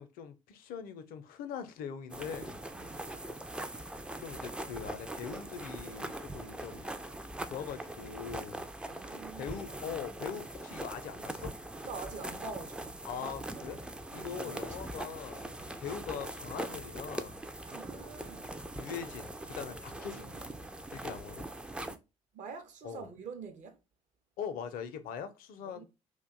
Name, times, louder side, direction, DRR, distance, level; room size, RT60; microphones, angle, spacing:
voice 1, 0.0-2.6 3.6-3.9 4.2-6.9 7.4-8.7 8.9-11.5 13.1-13.8 14.1-17.4 18.7-20.3 20.9-21.5 22.8-23.1 24.4-25.8, left 7 dB, 55° left, 0.5 m, -42 dB
sound 1, 2.1-22.0, right 1 dB, 5° right, 0.4 m, -42 dB
voice 2, 2.7-3.1 8.9-9.7 11.8-13.3 13.6-13.8 14.2-14.7 15.6-15.8 17.6-18.6 19.9-20.3 21.8-22.0 22.3-23.8 25.6-25.8, right 5 dB, 45° right, 0.6 m, -46 dB
2.5 x 2.2 x 3.6 m
figure-of-eight pair, 50°, 17 cm